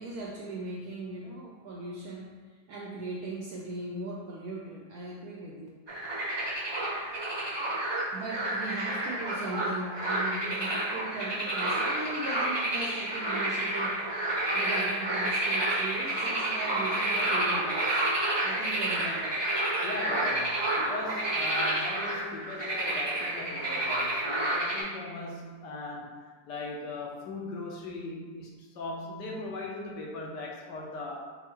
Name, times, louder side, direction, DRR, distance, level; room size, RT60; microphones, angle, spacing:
voice 1, 0.0-2.4 2.7-5.7 8.1-14.1 14.5-18.0 18.4-19.4, right 2 dB, 75° right, -2 dB, 0.8 m, -38 dB
sound 1, 5.9-24.8, right 1 dB, 45° right, 0.3 m, -30 dB
voice 2, 19.8-31.3, left 2 dB, 70° left, -1 dB, 1.2 m, -39 dB
6.8 x 2.4 x 2.9 m, 1.4 s
omnidirectional pair, 2.0 m